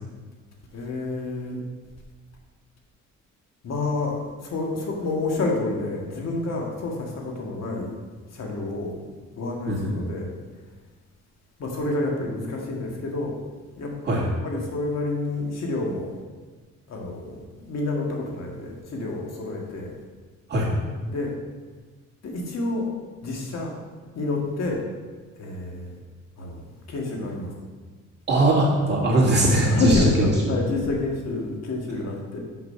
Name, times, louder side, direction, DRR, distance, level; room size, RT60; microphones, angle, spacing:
voice 1, 0.7-1.6 3.6-7.9 8.3-9.0 9.4-10.3 11.6-13.3 13.8-13.9 14.4-16.2 16.9-19.9 21.1-21.3 22.2-22.9 23.2-23.7 24.2-24.8 25.4-25.9 26.4-26.6 26.9-27.5 29.7-32.4, left 2 dB, 60° left, 0 dB, 1.8 m, -28 dB
voice 2, 28.3-30.3, right 1 dB, 35° right, -4 dB, 2.5 m, -20 dB
6.1 x 5.9 x 5.5 m, 1.4 s
cardioid pair, 90°, 30 cm